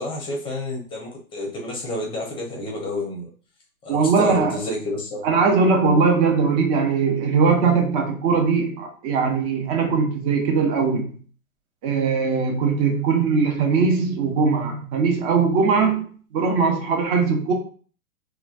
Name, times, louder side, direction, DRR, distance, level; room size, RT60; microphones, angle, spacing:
voice 1, 0.0-3.3 3.8-5.3, left 1 dB, 10° left, -2 dB, 0.7 m, -30 dB
voice 2, 3.9-4.6 5.2-11.2 11.8-16.1 16.3-17.5, right 5 dB, 30° right, 2 dB, 0.6 m, -20 dB
3.0 x 2.2 x 2.4 m, 0.42 s
hypercardioid pair, 125°, 43 cm